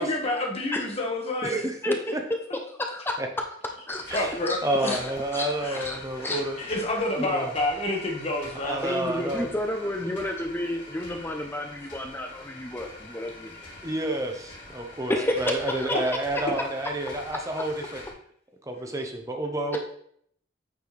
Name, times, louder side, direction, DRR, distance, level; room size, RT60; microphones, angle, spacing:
voice 1, 0.0-1.5 4.1-5.0 5.3-5.9 6.2-8.8 16.5-16.6, left 1 dB, 30° left, 0 dB, 1.2 m, -29 dB
voice 2, 1.4-2.2 3.2-3.3 3.9-4.3 4.6-6.6 7.1-7.5 8.6-9.5 13.8-18.0 18.6-19.8, right 1 dB, 15° right, 3 dB, 0.8 m, -30 dB
voice 3, 2.8-3.2 3.9-4.2 4.5-4.6 4.9-5.0 5.3-6.4 7.2-7.3 8.8-13.5 15.1-16.0 19.7-19.8, left 1 dB, 10° left, 3 dB, 0.5 m, -30 dB
sound 1, 3.9-18.1, left 2 dB, 75° left, 2.7 m, -45 dB
8.4 x 4.4 x 3.1 m, 0.65 s
head